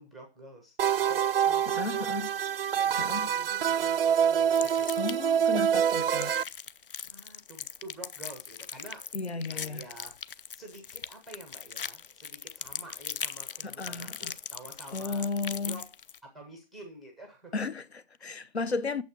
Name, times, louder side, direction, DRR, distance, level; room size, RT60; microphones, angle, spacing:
voice 1, 0.0-2.1 2.7-4.9 5.4-5.5 7.1-9.1 9.5-15.9 16.2-17.5, right 2 dB, ahead, 0.5 m, -48 dB
sound 1, 0.8-6.4, right 8 dB, 65° right, 0.4 m, -26 dB
voice 2, 1.8-2.3 3.0-3.3 5.0-6.4 9.1-9.9 13.6-14.3 14.9-15.8 17.5-19.0, left 3 dB, 90° left, 1.0 m, -34 dB
sound 2, 4.5-5.4 5.9-16.2, left 7 dB, 60° left, 0.6 m, -40 dB
8.7 x 7.2 x 6.0 m
figure-of-eight pair, 145°, 31 cm